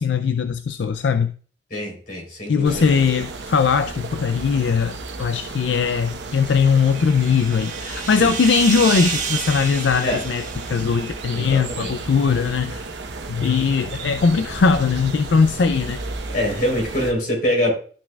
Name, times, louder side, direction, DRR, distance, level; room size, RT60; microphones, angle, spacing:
voice 1, 0.0-1.3 2.5-4.9 5.2-10.4 10.7-12.9 13.3-16.0, left 5 dB, 80° left, 0.4 m, -20 dB
voice 2, 1.7-3.0 8.0-8.3 10.0-10.2 11.3-11.9 16.3-17.7, equal, 55° left, 3.7 m, -24 dB
sound 1, 2.6-17.1, right 3 dB, 80° right, 1.0 m, -34 dB
sound 2, 6.1-11.7, right 5 dB, 45° right, 1.7 m, -30 dB
13.0 x 5.7 x 2.3 m
head